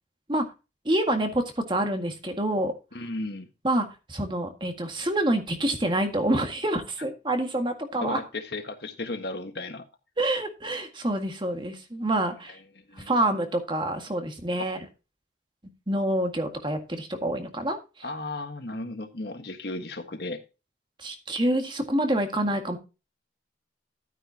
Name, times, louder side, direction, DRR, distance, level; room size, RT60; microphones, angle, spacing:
voice 1, 0.9-2.7 3.6-8.2 10.2-12.6 13.0-14.8 15.9-17.8 21.0-22.8, right 1 dB, 25° right, 6 dB, 1.8 m, -27 dB
voice 2, 2.9-3.5 8.0-9.8 12.8-13.1 18.0-20.4, left 2 dB, 60° left, 6 dB, 1.5 m, -35 dB
12.5 x 9.5 x 2.8 m, 0.29 s
head